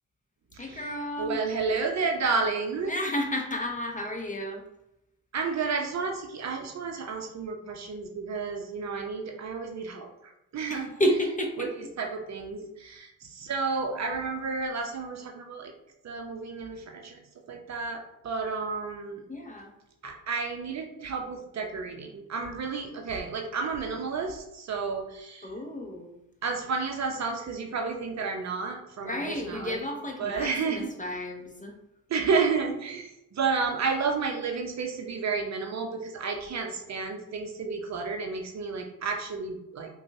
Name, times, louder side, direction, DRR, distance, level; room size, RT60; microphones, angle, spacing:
voice 1, 0.6-1.4 2.9-4.6 10.6-11.7 19.3-19.7 25.4-26.2 29.0-31.7, equal, 20° left, 2 dB, 0.7 m, -31 dB
voice 2, 1.2-2.9 5.3-10.9 11.6-11.7 12.0-15.7 16.0-17.2 17.5-19.2 20.0-25.5 26.4-29.9 30.2-30.9 32.1-39.9, right 4 dB, 40° right, 3 dB, 0.7 m, -31 dB
5.0 x 2.3 x 2.7 m, 0.86 s
hypercardioid pair, 55°, 45 cm